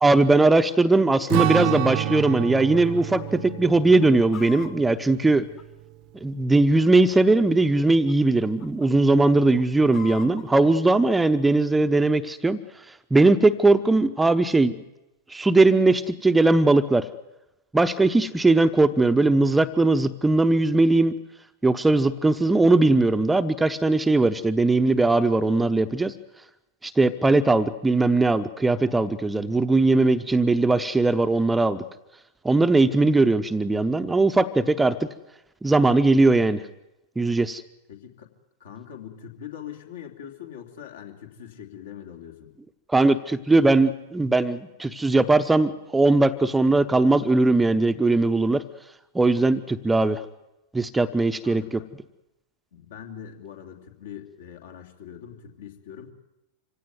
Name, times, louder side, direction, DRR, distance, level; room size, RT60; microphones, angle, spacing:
voice 1, 0.0-5.5 6.2-12.6 13.1-14.8 15.3-17.1 17.7-21.1 21.6-26.1 26.8-31.8 32.4-35.1 35.6-36.6 37.2-37.6 42.9-48.6 49.1-50.2 50.7-51.8, right 2 dB, 10° right, 9 dB, 0.9 m, -20 dB
Strum, 1.3-6.0, right 17 dB, 45° right, 0.8 m, -29 dB
Chicken rooster, 2.6-3.0 3.3-3.4 3.8-6.1 6.8-7.6 7.9-8.1 8.4-8.9 9.3-10.5, left 7 dB, 35° left, 1.8 m, -44 dB
voice 2, 37.9-38.3 38.6-42.5 51.4-51.9 52.7-56.1, left 9 dB, 60° left, 3 dB, 3.2 m, -42 dB
25.5 x 17.0 x 9.5 m, 0.95 s
figure-of-eight pair, 90°, 0 cm